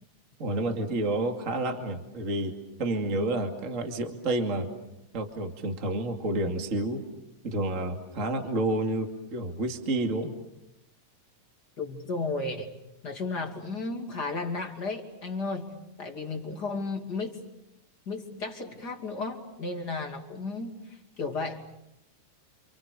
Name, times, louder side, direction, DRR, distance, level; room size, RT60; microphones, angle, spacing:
voice 1, 0.4-2.5 2.8-4.7 5.1-7.0 7.4-10.3, right 2 dB, 25° right, 4 dB, 2.5 m, -29 dB
voice 2, 11.8-12.7 13.0-17.4 18.1-21.6, left 3 dB, 35° left, 3 dB, 3.0 m, -34 dB
29.5 x 28.5 x 6.9 m, 0.84 s
omnidirectional pair, 3.4 m